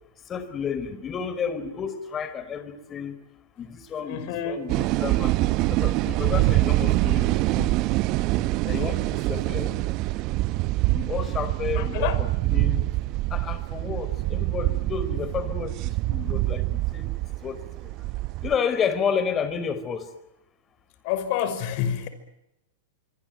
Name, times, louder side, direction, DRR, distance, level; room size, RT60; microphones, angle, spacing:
voice 1, 0.3-3.2 3.6-5.3 5.7-7.7 8.6-9.8 10.9-12.9 13.3-17.1 17.4-17.6 18.4-20.1, left 7 dB, 25° left, 13 dB, 4.6 m, -31 dB
voice 2, 4.0-4.6 11.8-12.2 21.0-22.1, left 9 dB, 55° left, 12 dB, 5.7 m, -28 dB
sound 1, 4.7-18.5, right 19 dB, 45° right, 1.0 m, -25 dB
25.0 x 25.0 x 9.3 m, 0.88 s
hypercardioid pair, 110°, 0 cm